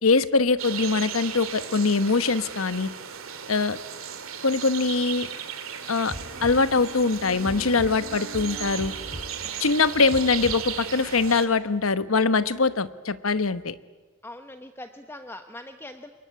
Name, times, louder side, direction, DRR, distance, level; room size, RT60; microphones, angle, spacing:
voice 1, 0.0-2.9 3.5-3.8 4.4-5.3 5.9-6.1 6.4-8.9 9.6-13.7, left 4 dB, 70° left, 13 dB, 1.1 m, -23 dB
sound 1, 0.6-11.5, right 8 dB, 65° right, 2.4 m, -36 dB
sound 2, 6.1-11.4, right 1 dB, 35° right, 3.8 m, -40 dB
voice 2, 14.2-16.1, left 1 dB, 10° left, 7 dB, 1.0 m, -41 dB
27.0 x 22.5 x 9.6 m, 1.3 s
head